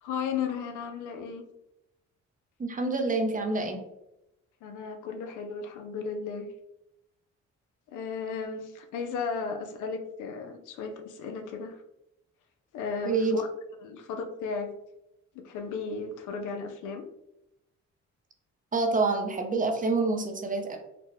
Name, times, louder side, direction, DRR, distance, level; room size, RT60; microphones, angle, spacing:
voice 1, 0.0-1.4 4.6-6.5 7.9-11.7 12.7-13.5 13.8-14.7 15.3-17.1, left 5 dB, 85° left, 6 dB, 0.6 m, -35 dB
voice 2, 2.6-3.8 13.0-13.4 18.7-20.8, right 3 dB, 25° right, 4 dB, 0.6 m, -27 dB
4.0 x 2.1 x 3.0 m, 0.87 s
cardioid pair, 90°, 30 cm